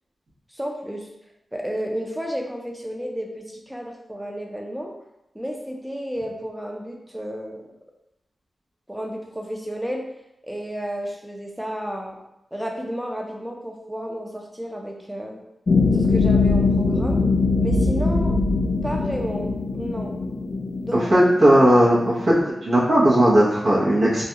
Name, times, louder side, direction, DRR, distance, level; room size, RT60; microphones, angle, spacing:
voice 1, 0.5-1.1 1.5-5.0 5.3-7.7 8.9-10.1 10.4-12.2 12.5-15.4 15.9-17.2 17.6-18.4 18.8-20.1 20.8-21.2, equal, 10° right, 1 dB, 0.5 m, -32 dB
sound 1, 15.7-22.4, left 3 dB, 55° left, 0.3 m, -22 dB
voice 2, 21.1-22.3 22.6-24.3, right 1 dB, 70° right, -8 dB, 0.8 m, -16 dB
2.3 x 2.2 x 2.8 m, 0.87 s
cardioid pair, 55°, 0 cm